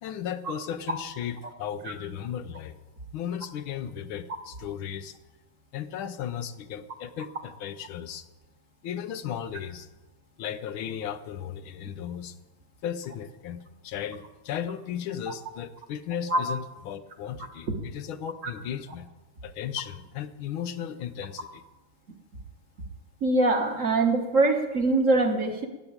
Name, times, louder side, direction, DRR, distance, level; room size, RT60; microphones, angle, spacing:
voice 1, 0.0-2.8 3.1-5.2 5.7-8.2 8.8-9.9 10.4-12.4 12.8-19.1 19.4-21.6, left 9 dB, 85° left, 11 dB, 1.7 m, -35 dB
voice 2, 23.2-25.7, right 2 dB, 45° right, 4 dB, 1.6 m, -23 dB
13.0 x 9.5 x 8.8 m, 1.1 s
omnidirectional pair, 2.2 m